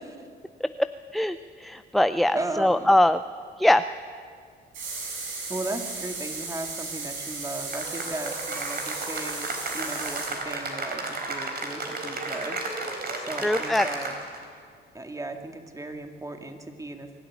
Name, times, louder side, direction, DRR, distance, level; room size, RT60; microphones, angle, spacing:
voice 1, 0.8-3.2 3.6-3.8 13.4-13.8, left 1 dB, ahead, 12 dB, 0.4 m, -22 dB
voice 2, 2.3-2.9 5.5-12.6 13.2-14.1 14.9-17.2, right 2 dB, 15° right, 5 dB, 2.1 m, -36 dB
sound 1, 4.7-10.3, right 3 dB, 80° right, 6.8 m, -35 dB
Cheering / Applause, 7.7-14.4, right 3 dB, 50° right, 4.0 m, -33 dB
23.0 x 12.5 x 9.9 m, 2.1 s
cardioid pair, 90°, 20 cm